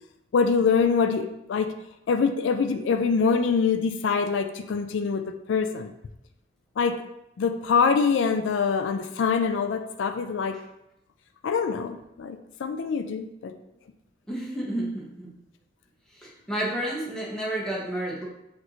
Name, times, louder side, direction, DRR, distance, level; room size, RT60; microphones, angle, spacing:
voice 1, 0.3-1.7 2.1-5.9 6.8-7.0 7.4-10.6 11.4-13.5, left 5 dB, 85° left, 7 dB, 0.4 m, -24 dB
voice 2, 14.3-15.3 16.2-18.2, right 1 dB, 5° left, -5 dB, 1.0 m, -31 dB
6.0 x 2.6 x 3.1 m, 0.85 s
head